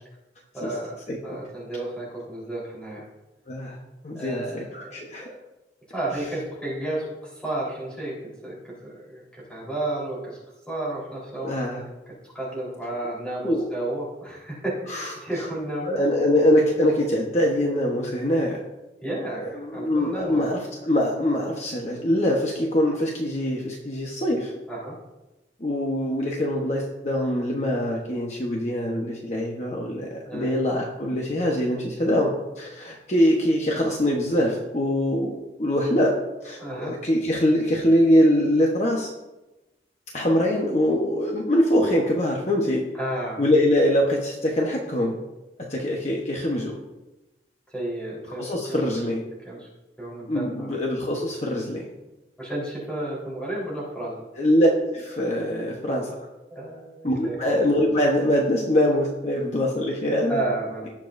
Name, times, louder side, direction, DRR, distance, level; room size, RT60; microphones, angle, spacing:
voice 1, 0.5-0.9 1.2-3.0 4.1-5.4 5.9-8.1 8.4-8.6 8.8-9.2 9.5-10.4 10.7-11.8 12.2-16.0 19.0-20.4 24.7-25.0 30.3-30.6 36.6-37.0 43.0-43.4 47.7-49.1 49.4-49.7 50.0-50.8 52.4-54.1 56.5-57.4 60.3-60.9, right 1 dB, 5° left, -6 dB, 4.0 m, -32 dB
voice 2, 1.1-1.4 3.5-3.8 4.0-5.3 6.1-6.2 11.4-11.8 13.4-13.7 14.9-15.4 15.8-18.6 19.4-24.5 25.6-36.2 36.4-39.1 40.1-42.8 43.4-45.2 45.7-46.8 48.3-49.2 50.3-51.9 54.4-54.7 54.9-56.1 57.0-60.4, left 1 dB, 40° left, -1 dB, 1.1 m, -23 dB
18.0 x 7.3 x 2.6 m, 1.0 s
head